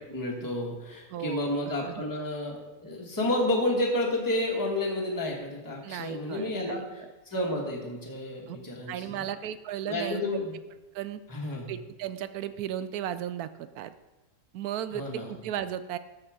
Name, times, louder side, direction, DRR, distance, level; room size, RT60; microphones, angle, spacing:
voice 1, 0.1-9.3 9.9-10.6 11.3-11.7 14.9-15.3, left 1 dB, 10° left, -2 dB, 1.6 m, -31 dB
voice 2, 1.1-1.5 1.8-2.1 5.8-6.8 8.5-8.6 8.9-10.4 10.9-11.2 11.7-13.9 14.5-16.0, right 10 dB, 75° right, 13 dB, 1.0 m, -35 dB
13.0 x 4.8 x 5.0 m, 1.2 s
omnidirectional pair, 1.7 m